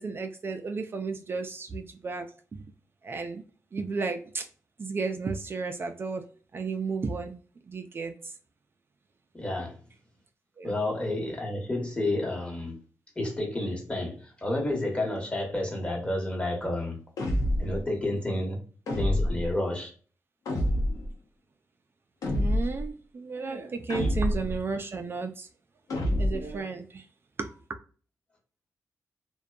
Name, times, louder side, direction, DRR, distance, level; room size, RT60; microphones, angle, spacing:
voice 1, 0.0-2.6 3.0-3.4 3.7-4.5 4.8-6.3 6.5-7.4 7.7-8.3 10.6-10.7 22.3-25.5 26.0-27.1 27.4-27.5, right 4 dB, 40° right, 0.3 m, -33 dB
voice 2, 9.3-9.8 10.6-12.8 13.2-17.0 17.6-18.6 19.0-19.9 24.0-24.1, left 1 dB, 20° left, 1.0 m, -30 dB
sound 1, 17.2-17.8 18.9-19.5 20.5-21.1 22.2-22.9 23.9-24.6 25.9-26.6, left 1 dB, 80° left, 0.8 m, -27 dB
2.6 x 2.2 x 2.3 m
cardioid pair, 90°, 6 cm